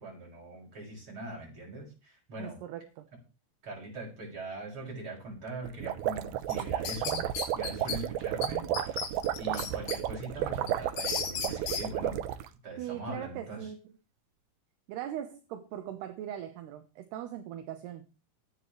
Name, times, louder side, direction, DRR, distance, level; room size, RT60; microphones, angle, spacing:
voice 1, 0.0-2.6 3.6-7.2 7.5-9.1 9.4-12.2 12.6-13.7, right 1 dB, 25° right, -1 dB, 7.4 m, -41 dB
voice 2, 2.4-3.1 7.7-8.1 8.6-8.7 12.8-13.8 14.9-18.1, right 11 dB, 70° right, 7 dB, 2.7 m, -40 dB
sound 1, 5.6-12.5, right 11 dB, 85° right, 2.1 m, -33 dB
sound 2, 6.5-8.0 8.4-8.5 8.7-10.0 10.4-11.8, left 6 dB, 65° left, 5.2 m, -34 dB
22.0 x 9.9 x 3.3 m, 0.32 s
omnidirectional pair, 5.6 m